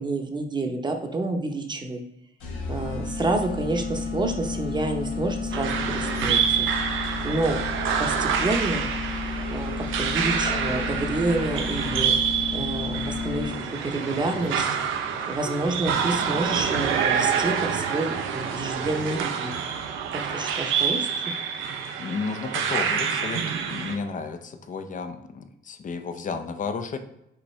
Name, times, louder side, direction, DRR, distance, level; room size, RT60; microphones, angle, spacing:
voice 1, 0.0-2.0 2.7-6.7 7.2-7.6 8.0-8.9 9.5-13.5 13.8-14.8 15.3-19.5 20.3-21.1, right 2 dB, 20° right, 4 dB, 0.7 m, -28 dB
sound 1, 2.4-13.8, left 4 dB, 85° left, 1.1 m, -32 dB
sound 2, 5.5-23.9, right 7 dB, 80° right, 0.6 m, -27 dB
sound 3, 9.0-16.4, left 2 dB, 55° left, 1.5 m, -46 dB
voice 2, 22.0-27.0, left 5 dB, 40° left, 8 dB, 0.5 m, -33 dB
5.6 x 2.5 x 3.2 m, 0.85 s
cardioid pair, 90°, 20 cm